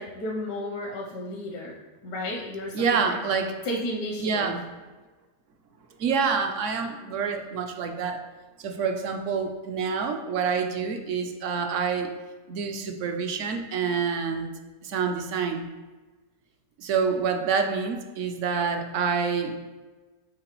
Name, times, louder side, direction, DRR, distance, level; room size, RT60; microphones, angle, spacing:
voice 1, 0.0-1.8 2.0-3.2 3.6-4.5, left 1 dB, 80° left, -1 dB, 1.3 m, -33 dB
voice 2, 2.7-3.5 4.2-4.6 6.0-8.2 8.6-12.1 12.5-14.5 14.8-15.7 16.8-19.5, right 5 dB, 65° right, 6 dB, 0.8 m, -27 dB
8.6 x 3.9 x 3.0 m, 1.3 s
omnidirectional pair, 1.7 m